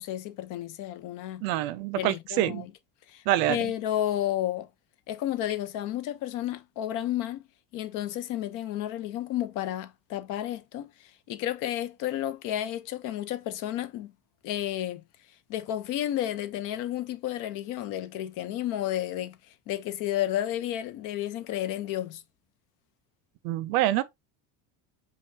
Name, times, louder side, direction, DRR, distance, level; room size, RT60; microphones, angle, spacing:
voice 1, 0.0-1.4 1.9-2.7 3.1-3.2 3.5-4.7 5.1-7.5 7.7-14.1 14.4-15.0 15.5-19.4 19.7-22.2, left 12 dB, 55° left, 0.6 m, -32 dB
voice 2, 1.4-2.7 3.3-3.6 23.4-24.0, right 14 dB, 75° right, 0.5 m, -26 dB
5.3 x 2.3 x 2.6 m
cardioid pair, 155°, 37 cm